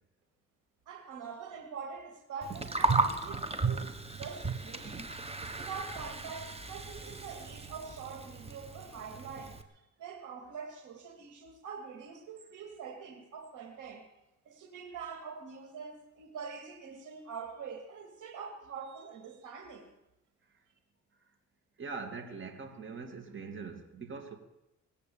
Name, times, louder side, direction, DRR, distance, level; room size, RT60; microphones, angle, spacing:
voice 1, 0.9-3.9 4.2-5.1 5.6-9.6 10.0-14.1 14.5-19.9, right 6 dB, 80° right, 2.5 m, -44 dB
Gurgling, 2.4-9.6, right 3 dB, 20° right, 1.5 m, -35 dB
voice 2, 21.8-24.4, right 4 dB, 40° right, 2.5 m, -42 dB
19.0 x 8.6 x 8.7 m
cardioid pair, 90°, 30 cm